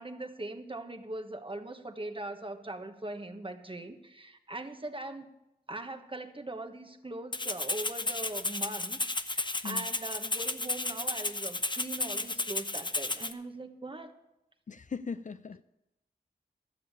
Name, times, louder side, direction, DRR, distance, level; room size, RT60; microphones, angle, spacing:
voice 1, 0.0-5.3 5.7-14.1, right 2 dB, 30° right, 6 dB, 1.3 m, -41 dB
Rattle (instrument), 7.3-13.3, left 2 dB, 30° left, 0.8 m, -33 dB
voice 2, 14.7-15.6, left 5 dB, 50° left, 12 dB, 0.5 m, -39 dB
13.0 x 7.1 x 8.3 m, 0.93 s
cardioid pair, 45°, 16 cm